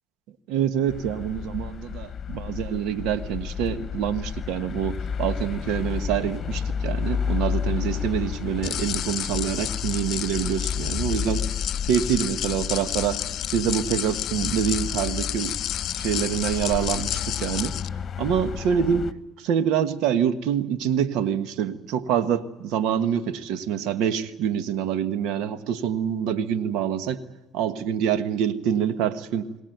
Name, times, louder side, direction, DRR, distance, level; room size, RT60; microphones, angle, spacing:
voice 1, 0.5-11.4 11.9-15.5 16.0-17.7 18.2-19.1 19.4-27.2 27.5-29.5, right 9 dB, 80° right, 13 dB, 1.4 m, -26 dB
sound 1, 0.9-19.1, left 7 dB, 45° left, 1.2 m, -31 dB
sound 2, 8.6-17.9, left 12 dB, 65° left, 0.7 m, -31 dB
22.5 x 18.0 x 9.3 m, 1.0 s
supercardioid pair, 70°, 0 cm